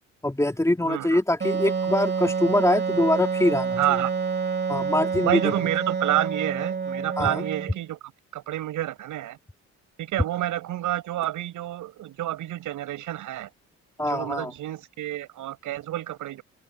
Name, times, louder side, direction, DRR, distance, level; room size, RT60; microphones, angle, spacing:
voice 1, 0.2-3.8 4.7-5.5 7.2-7.4 14.0-14.5, left 1 dB, 10° left, 3.6 m, -23 dB
voice 2, 0.9-1.2 3.8-4.1 5.2-8.0 8.3-9.4 10.0-13.5 14.1-16.4, right 13 dB, 85° right, 7.4 m, -29 dB
Wind instrument woodwind instrument, 1.4-7.9, right 5 dB, 35° right, 3.6 m, -28 dB
open air
cardioid pair, 90°, 30 cm